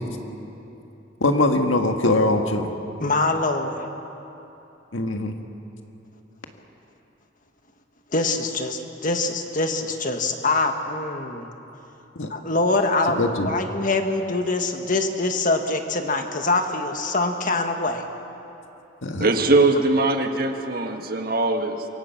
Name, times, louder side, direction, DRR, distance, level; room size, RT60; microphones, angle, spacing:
voice 1, 1.2-2.7 4.9-5.3 12.2-12.3 13.2-13.5 19.0-19.3, left 2 dB, 85° left, 4 dB, 1.8 m, -22 dB
voice 2, 3.0-3.8 8.1-11.5 12.3-18.0, left 2 dB, 45° left, 5 dB, 1.6 m, -24 dB
voice 3, 19.2-21.9, right 2 dB, 50° right, 4 dB, 1.6 m, -21 dB
27.5 x 24.0 x 5.9 m, 2.9 s
head